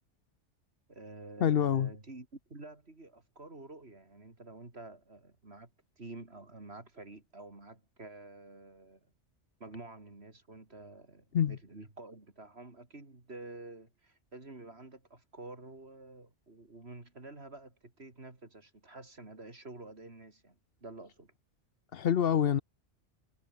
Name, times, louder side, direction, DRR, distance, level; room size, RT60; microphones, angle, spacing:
voice 1, 0.9-5.7 6.0-9.1 9.6-21.3, right 2 dB, 60° right, 4.1 m, -49 dB
voice 2, 1.4-1.9 11.3-11.6 21.9-22.6, left 9 dB, 55° left, 0.9 m, -26 dB
omnidirectional pair, 1.2 m